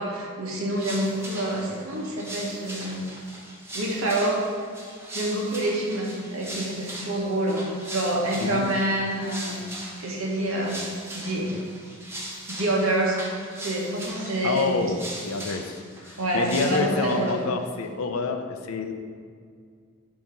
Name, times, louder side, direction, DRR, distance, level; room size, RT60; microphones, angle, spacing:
voice 1, 0.0-3.0 3.7-4.4 5.1-7.6 7.9-9.6 10.0-10.8 11.1-11.5 12.5-13.2 13.6-14.9 16.2-17.3, right 1 dB, 80° right, -2 dB, 1.2 m, -27 dB
sound 1, 0.8-17.4, right 1 dB, 10° right, 0.8 m, -39 dB
voice 2, 14.4-18.9, left 4 dB, 85° left, 7 dB, 0.5 m, -28 dB
7.2 x 2.9 x 5.1 m, 2.1 s
head